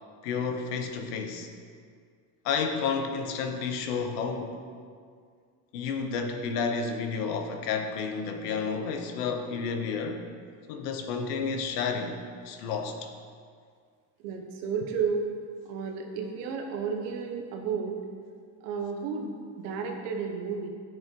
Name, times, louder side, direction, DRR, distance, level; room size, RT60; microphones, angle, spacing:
voice 1, 0.2-1.5 2.4-4.6 5.7-10.2 10.7-13.1, left 5 dB, 90° left, 5 dB, 0.9 m, -31 dB
voice 2, 14.2-15.3 15.6-18.0 18.6-20.7, right 5 dB, 85° right, 2 dB, 1.2 m, -32 dB
10.5 x 6.8 x 2.9 m, 2.1 s
supercardioid pair, 85°, 45 cm